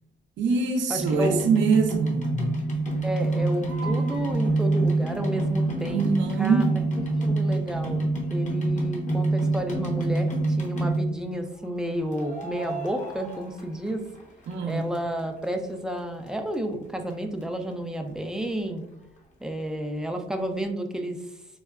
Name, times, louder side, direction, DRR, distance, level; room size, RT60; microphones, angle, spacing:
voice 1, 0.4-2.4 5.9-6.9 14.5-15.0, right 5 dB, 70° right, 0.6 m, -24 dB
voice 2, 0.9-1.4 3.0-6.0 6.4-6.6 7.2-10.3 10.6-14.1 14.7-18.8 19.4-21.2, right 1 dB, 5° right, 0.4 m, -31 dB
sound 1, 1.0-11.3 12.1-14.2 14.5-15.4 16.0-16.1 16.3-16.4 16.5-16.6 17.1-17.2 17.4-17.5, right 2 dB, 40° left, 1.0 m, -27 dB
4.5 x 2.1 x 2.3 m
cardioid pair, 90°, 20 cm